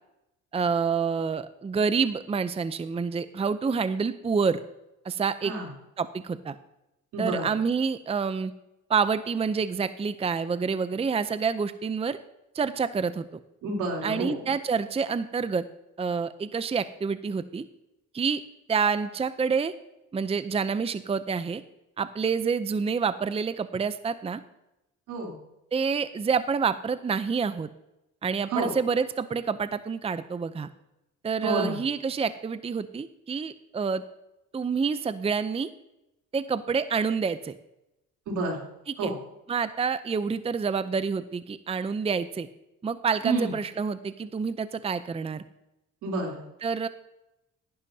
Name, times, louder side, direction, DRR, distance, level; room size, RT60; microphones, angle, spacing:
voice 1, 0.5-4.6 5.0-5.5 6.0-6.6 7.2-8.5 8.9-12.2 12.5-13.3 14.0-15.6 16.0-17.6 18.1-18.4 18.7-19.7 20.1-21.6 22.0-24.4 25.7-27.7 28.2-30.7 31.2-34.0 34.5-35.7 36.3-37.5 38.9-39.1 39.5-42.5 42.8-45.4 46.6-46.9, right 5 dB, 20° right, 13 dB, 0.5 m, -28 dB
voice 2, 7.1-7.4 13.6-14.4 25.1-25.3 28.5-28.7 31.4-31.8 38.3-38.7 39.0-39.1 43.2-43.5 46.0-46.5, right 2 dB, 85° right, 0 dB, 3.4 m, -29 dB
16.5 x 11.0 x 2.8 m, 0.90 s
cardioid pair, 90°, 30 cm